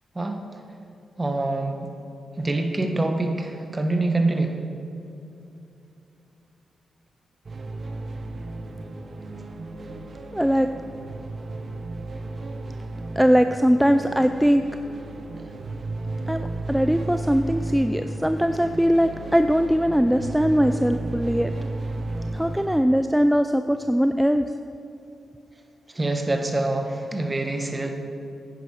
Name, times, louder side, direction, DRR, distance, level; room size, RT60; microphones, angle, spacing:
voice 1, 1.2-1.9 2.4-4.6 25.9-27.9, right 2 dB, 25° right, 4 dB, 1.4 m, -25 dB
sound 1, 7.4-22.7, right 2 dB, 55° right, 1.0 m, -33 dB
voice 2, 10.3-10.7 13.2-14.6 16.3-21.5 22.3-24.5, equal, 5° right, 8 dB, 0.4 m, -21 dB
10.5 x 9.2 x 5.0 m, 2.8 s
supercardioid pair, 50°, 0 cm